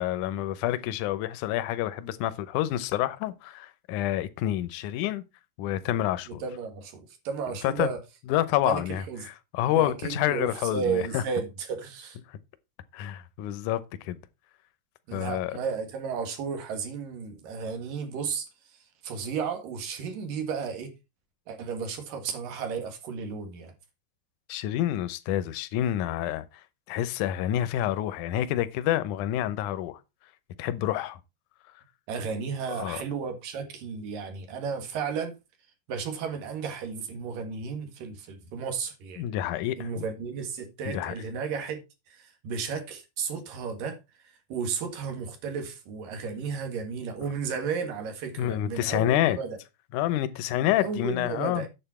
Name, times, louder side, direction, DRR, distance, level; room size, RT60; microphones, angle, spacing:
voice 1, 0.0-5.2 5.6-6.4 7.6-7.9 8.3-11.2 12.9-14.2 15.1-15.6 24.5-26.4 26.9-30.0 30.6-31.2 32.7-33.0 39.2-40.0 40.9-41.1 48.4-49.4 49.9-51.7, left 13 dB, 75° left, 2.1 m, -28 dB
voice 2, 6.3-8.0 8.6-9.3 9.7-12.2 15.1-20.9 21.5-23.7 32.1-35.3 35.9-39.2 39.8-41.8 42.1-44.0 44.2-49.5 50.8-51.7, right 6 dB, 75° right, 3.5 m, -33 dB
9.0 x 7.5 x 4.3 m
omnidirectional pair, 4.0 m